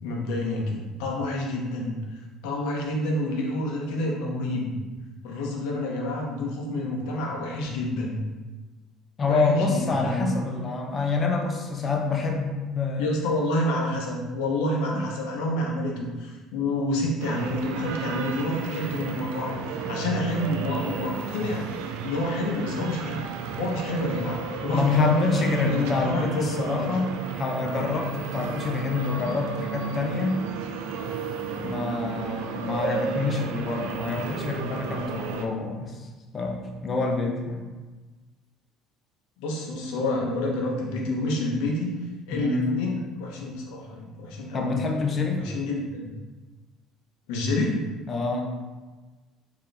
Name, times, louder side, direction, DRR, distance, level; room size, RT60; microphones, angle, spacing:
voice 1, 0.0-2.0 2.4-4.8 5.2-8.2 9.2-10.3 13.0-19.6 19.9-21.7 22.0-23.2 23.6-26.8 39.4-41.9 42.3-44.8 45.4-46.1 47.3-47.8, left 1 dB, 85° left, -1 dB, 0.8 m, -28 dB
voice 2, 9.2-13.1 14.9-15.1 24.7-30.4 31.6-36.1 36.3-37.6 42.3-42.8 44.5-45.4 48.1-48.6, left 3 dB, 35° left, 2 dB, 0.6 m, -27 dB
Century Square Shanghai at Night, 17.2-35.4, right 6 dB, 90° right, 0.3 m, -33 dB
3.9 x 2.9 x 3.3 m, 1.3 s
supercardioid pair, 100°, 0 cm